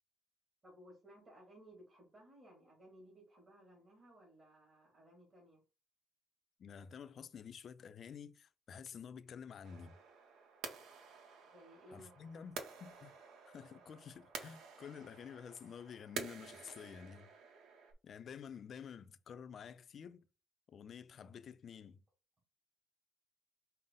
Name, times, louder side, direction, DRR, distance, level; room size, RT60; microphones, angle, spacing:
voice 1, 0.6-5.6 11.4-12.4, equal, 35° right, 2.2 m, -60 dB
voice 2, 6.6-10.0 11.9-13.1 13.5-17.3 18.0-20.3 20.7-22.0, left 7 dB, 60° left, 0.4 m, -50 dB
sound 1, 9.6-17.9, right 5 dB, 80° right, 0.8 m, -50 dB
5.4 x 2.0 x 3.7 m
supercardioid pair, 75°, 0 cm